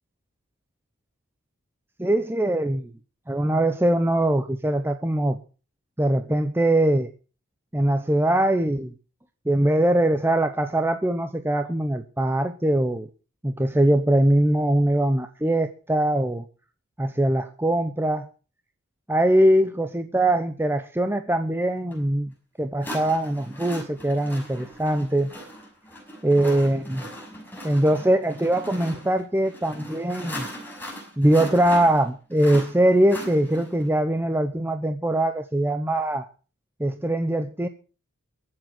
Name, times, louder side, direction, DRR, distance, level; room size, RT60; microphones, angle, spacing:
voice 1, 2.0-2.9 3.3-5.4 6.0-7.1 7.7-8.9 9.5-13.1 13.4-16.4 17.0-18.3 19.1-22.3 22.6-25.3 26.2-27.1 27.6-30.5 31.2-36.3 36.8-37.7, right 1 dB, 10° right, 0.8 m, -22 dB
sound 1, 21.9-22.0 22.8-33.9, equal, 10° left, 5.7 m, -39 dB
23.0 x 7.6 x 6.0 m
head